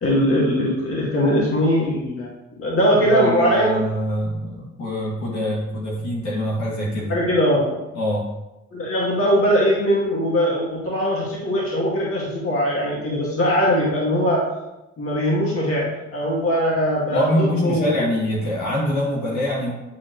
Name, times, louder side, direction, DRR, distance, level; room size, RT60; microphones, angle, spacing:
voice 1, 0.0-2.3 2.6-3.8 7.1-7.7 8.7-14.4 15.0-17.3 17.6-17.9, equal, 45° left, -4 dB, 2.2 m, -20 dB
voice 2, 3.0-7.2 7.9-8.3 17.1-19.7, left 1 dB, 70° left, -5 dB, 2.4 m, -24 dB
9.4 x 4.3 x 3.2 m, 0.96 s
cardioid pair, 90°, 30 cm